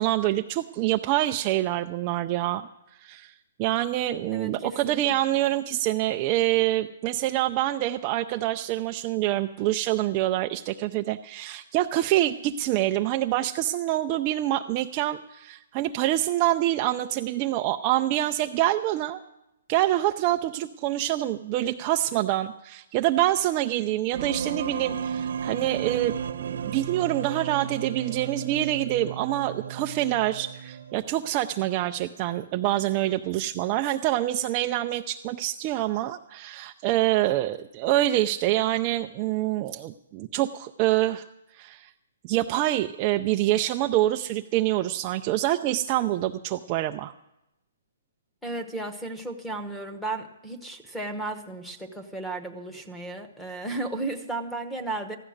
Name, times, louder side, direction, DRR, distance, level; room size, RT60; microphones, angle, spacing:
voice 1, 0.0-3.3 3.6-19.2 19.7-41.2 41.5-41.9 42.2-47.1, right 14 dB, 25° right, 6 dB, 0.4 m, -26 dB
voice 2, 4.3-5.2 48.4-55.2, right 2 dB, 5° left, 8 dB, 1.0 m, -34 dB
sound 1, 24.1-31.2, right 7 dB, 60° right, 0.9 m, -33 dB
15.0 x 11.0 x 6.4 m, 0.91 s
hypercardioid pair, 165°, 0 cm